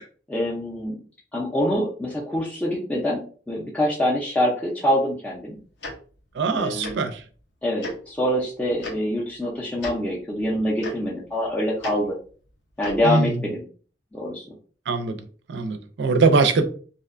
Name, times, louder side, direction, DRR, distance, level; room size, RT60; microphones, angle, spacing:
voice 1, 0.3-1.0 1.3-5.6 6.6-7.0 7.6-12.1 12.8-13.6 14.1-14.5, left 1 dB, 10° left, 0.4 m, -25 dB
Tick-tock, 5.8-5.9 6.8-6.9 7.8-7.9 8.8-8.9 9.8-9.9 10.8-10.9 11.8-11.9 12.8-13.0, left 1 dB, 70° left, 0.6 m, -32 dB
voice 2, 6.4-7.2 13.0-13.4 14.9-15.1 15.5-16.6, right 4 dB, 70° right, 0.4 m, -21 dB
2.6 x 2.1 x 2.4 m
head